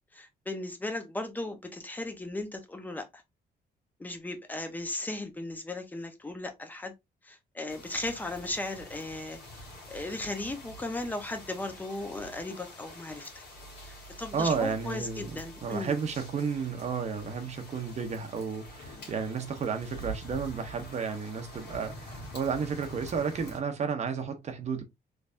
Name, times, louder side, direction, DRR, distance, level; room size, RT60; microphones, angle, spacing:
voice 1, 0.1-3.1 4.0-6.9 7.2-13.3 13.8-15.9, left 2 dB, 10° left, 0.7 m, -36 dB
sound 1, 7.7-23.6, equal, 70° left, 1.7 m, -46 dB
voice 2, 14.3-24.8, right 6 dB, 40° right, 0.8 m, -32 dB
3.4 x 3.2 x 2.5 m
cardioid pair, 150°, 17 cm